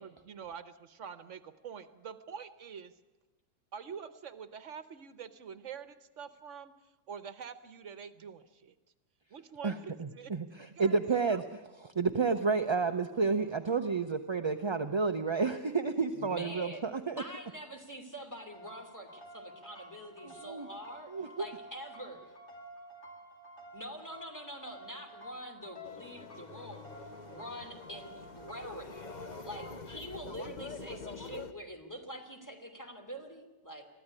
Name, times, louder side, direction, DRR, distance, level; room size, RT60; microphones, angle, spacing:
voice 1, 0.0-2.9 3.7-6.7 7.1-8.7 9.3-10.3 10.8-11.4, right 7 dB, 70° right, 13 dB, 1.2 m, -46 dB
voice 2, 10.0-11.4 11.8-17.2 20.2-20.7 21.1-21.5, right 4 dB, 30° right, 7 dB, 0.6 m, -30 dB
voice 3, 16.1-16.8 17.2-21.1 21.4-22.2 23.7-26.9 27.3-28.9 29.4-33.8, equal, 15° left, 3 dB, 2.8 m, -45 dB
sound 1, 18.5-30.0, right 1 dB, 65° left, 3.4 m, -52 dB
sound 2, 25.8-31.5, left 4 dB, 35° left, 1.1 m, -46 dB
22.0 x 14.5 x 9.7 m, 1.1 s
omnidirectional pair, 1.3 m